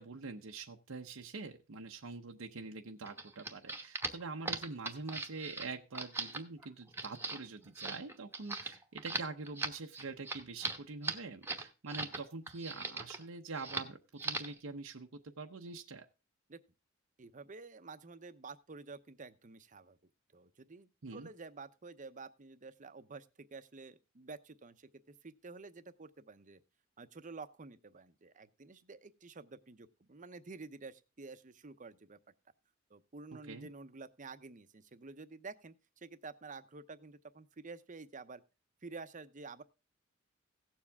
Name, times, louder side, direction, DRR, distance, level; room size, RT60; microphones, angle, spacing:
voice 1, 0.0-16.1 21.0-21.3 33.5-33.7, right 3 dB, 85° right, 3 dB, 0.8 m, -45 dB
sound 1, 3.0-12.2 12.5-13.2 13.6-13.9 14.2-14.6, right 3 dB, 10° right, 1.1 m, -39 dB
voice 2, 17.2-20.0 20.3-24.9 25.2-26.6 27.0-32.2 32.9-38.4 38.8-39.6, right 4 dB, 40° right, 12 dB, 0.8 m, -50 dB
16.5 x 7.3 x 3.5 m, 0.29 s
head